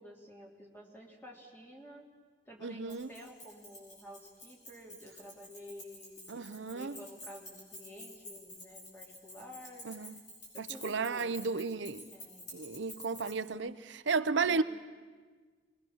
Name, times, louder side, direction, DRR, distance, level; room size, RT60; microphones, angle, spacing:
voice 1, 0.0-2.1 2.5-6.4 6.7-9.8 10.1-10.2 10.5-11.4 12.1-12.5 14.5-14.6, equal, 10° left, 3.1 m, -51 dB
voice 2, 2.6-3.1 6.3-7.0 9.9-10.2 10.6-12.1 12.5-14.6, right 4 dB, 85° right, 0.7 m, -33 dB
Keys jangling, 2.9-13.5, left 1 dB, 45° left, 7.5 m, -50 dB
26.0 x 21.0 x 7.3 m
head